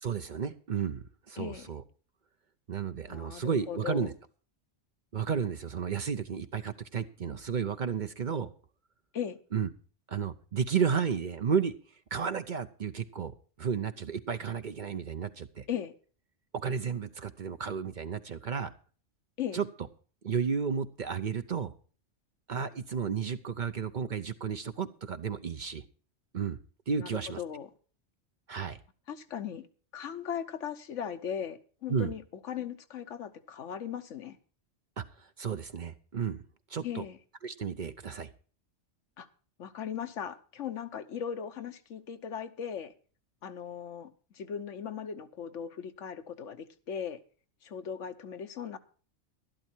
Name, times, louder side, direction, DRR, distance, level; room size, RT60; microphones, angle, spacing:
voice 1, 0.0-1.8 2.7-4.1 5.1-8.5 9.5-9.7 10.1-11.7 12.1-15.6 16.5-18.7 19.5-19.7 20.2-21.7 22.5-25.8 26.3-26.6 26.9-27.4 28.5-28.8 31.9-32.1 35.0-36.4 36.7-37.1 37.4-38.3, right 6 dB, 50° right, 0.7 m, -32 dB
voice 2, 1.4-1.7 3.1-4.1 9.1-9.4 15.7-15.9 19.4-19.6 27.0-27.1 27.4-27.7 29.1-29.7 29.9-34.4 36.8-37.2 39.2-39.3 39.6-42.9 43.4-47.2 47.6-48.8, left 8 dB, 85° left, 1.3 m, -38 dB
12.0 x 11.5 x 4.4 m
omnidirectional pair, 1.2 m